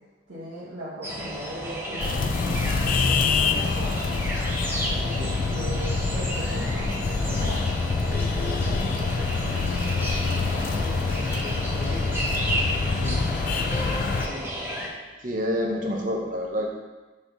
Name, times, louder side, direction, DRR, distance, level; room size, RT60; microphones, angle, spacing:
voice 1, 0.3-4.1 5.0-7.6 8.1-12.1 14.2-14.5, equal, 80° right, -11 dB, 1.7 m, -38 dB
sound 1, 1.0-14.9, equal, 10° right, 0.8 m, -32 dB
sound 2, 2.0-14.3, left 4 dB, 45° left, 0.3 m, -26 dB
voice 2, 13.0-13.3 15.2-16.7, equal, 45° right, 0 dB, 0.9 m, -28 dB
6.1 x 4.2 x 4.0 m, 1.2 s
head